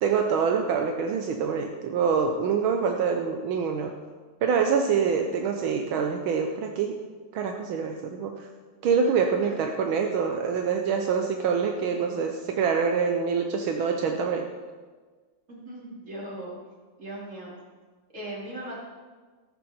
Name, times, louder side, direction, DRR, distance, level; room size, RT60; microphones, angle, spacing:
voice 1, 0.0-3.9 4.4-7.0 7.3-8.5 8.8-14.5, right 6 dB, 80° right, 4 dB, 1.7 m, -25 dB
voice 2, 15.5-16.5 17.0-17.5 18.1-18.8, right 1 dB, 35° right, -4 dB, 3.4 m, -38 dB
14.0 x 12.0 x 4.4 m, 1.4 s
omnidirectional pair, 2.2 m